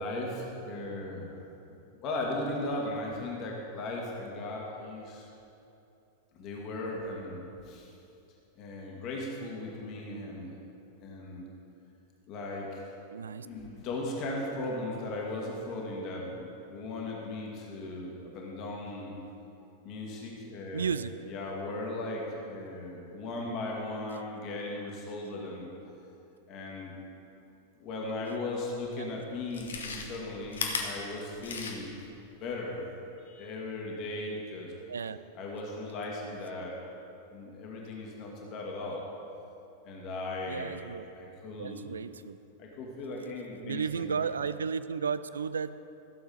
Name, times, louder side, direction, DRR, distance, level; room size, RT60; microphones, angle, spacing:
voice 1, 0.0-1.4 2.0-5.3 6.3-7.9 8.6-10.6 11.0-11.5 12.3-12.8 13.3-19.2 19.8-20.9 21.3-25.7 26.5-27.0 27.8-31.9 32.4-32.8 33.2-34.7 35.4-36.8 37.3-39.0 39.8-40.8 41.2-41.8 42.6-44.2, left 2 dB, 40° left, -2 dB, 1.9 m, -37 dB
voice 2, 13.1-13.5 20.7-21.1 34.9-35.2 40.5-41.1 41.6-42.4 43.6-45.8, right 6 dB, 70° right, 14 dB, 0.3 m, -33 dB
Chewing mastication, 29.4-32.1 32.4-32.5, left 4 dB, 65° left, 1.1 m, -36 dB
15.0 x 7.0 x 4.1 m, 2.8 s
figure-of-eight pair, 90°, 0 cm